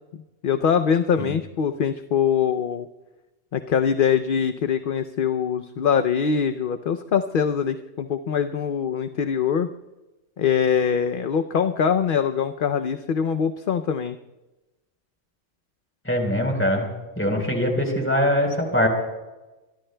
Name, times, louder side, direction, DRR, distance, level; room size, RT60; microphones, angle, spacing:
voice 1, 0.4-2.9 3.5-9.7 10.4-14.2, left 7 dB, 55° left, 8 dB, 0.7 m, -23 dB
voice 2, 16.0-16.9 17.2-18.9, left 1 dB, 10° left, 2 dB, 4.0 m, -22 dB
26.0 x 23.0 x 2.2 m, 1.1 s
omnidirectional pair, 1.3 m